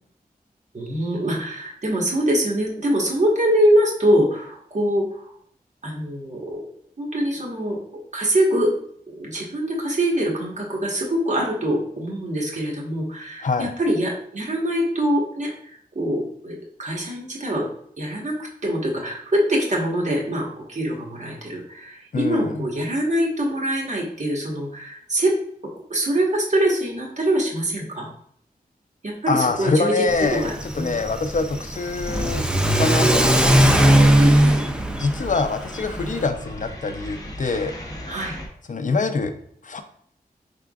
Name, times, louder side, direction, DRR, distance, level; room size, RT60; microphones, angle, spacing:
voice 1, 0.7-5.3 5.8-6.6 7.0-7.8 8.1-8.7 9.1-17.7 18.0-18.4 18.6-25.3 25.9-28.1 29.0-31.0 34.1-34.6 38.1-38.3, right 1 dB, 50° right, -2 dB, 1.3 m, -24 dB
voice 2, 13.4-13.7 22.1-22.7 29.3-30.5 30.7-32.5 32.8-34.1 35.0-37.7 38.7-39.3 39.6-39.8, left 3 dB, 55° left, 8 dB, 0.5 m, -25 dB
sound 1, 29.5-30.1 30.4-38.5, left 1 dB, 25° left, 0.9 m, -41 dB
Car / Accelerating revving vroom, 30.1-36.3, right 1 dB, 5° right, 0.5 m, -19 dB
4.8 x 3.5 x 2.3 m, 0.65 s
wide cardioid pair, 70°, 16 cm